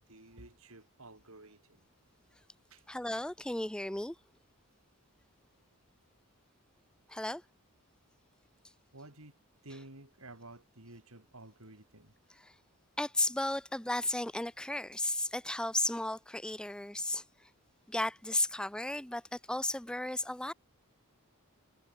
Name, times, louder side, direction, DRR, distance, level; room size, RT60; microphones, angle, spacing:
voice 1, 0.0-1.9 2.7-2.9 8.9-12.1, right 2 dB, 75° right, 5.3 m, -52 dB
voice 2, 2.9-4.2 7.1-7.4 13.0-17.2 17.9-20.5, left 1 dB, 5° left, 0.4 m, -34 dB
head